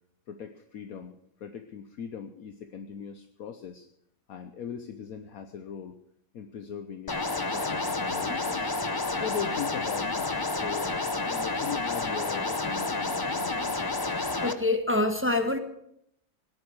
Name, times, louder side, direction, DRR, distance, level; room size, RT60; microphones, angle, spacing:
voice 1, 0.3-3.9 4.3-6.0 6.3-7.2 7.5-8.8 9.2-11.0 11.2-13.8, left 7 dB, 65° left, 7 dB, 1.3 m, -39 dB
sound 1, 7.1-14.5, left 3 dB, 25° left, 0.5 m, -30 dB
voice 2, 14.3-15.6, left 2 dB, 10° right, 6 dB, 1.0 m, -26 dB
17.5 x 10.5 x 6.3 m, 0.75 s
omnidirectional pair, 1.7 m